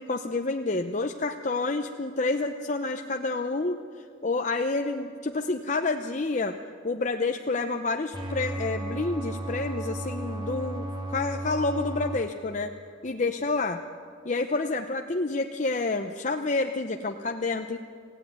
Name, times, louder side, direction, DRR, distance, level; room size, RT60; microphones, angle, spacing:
voice 1, 0.0-3.8 4.2-6.6 6.8-12.7 13.0-13.8 14.3-17.8, left 3 dB, 40° left, 5 dB, 0.7 m, -29 dB
sound 1, 8.1-12.2, right 1 dB, 25° right, 2.3 m, -34 dB
27.0 x 16.5 x 9.4 m, 2.4 s
head